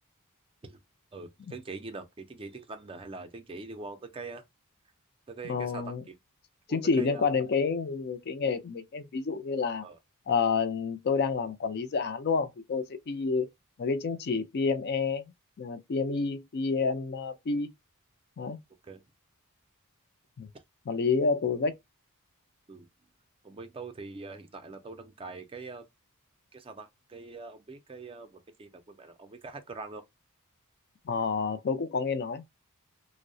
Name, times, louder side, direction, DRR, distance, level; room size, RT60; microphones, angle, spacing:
voice 1, 1.1-4.4 5.3-6.2 6.7-7.3 9.8-10.0 18.8-19.0 22.7-22.9 23.4-25.9 26.5-30.0, right 3 dB, 25° right, 0.4 m, -43 dB
voice 2, 5.4-6.0 6.7-9.8 10.3-13.5 13.8-15.3 15.6-17.7 18.4-18.6 20.4-20.5 20.9-21.7 31.1-32.4, left 4 dB, 50° left, 0.4 m, -29 dB
2.7 x 2.0 x 2.6 m
head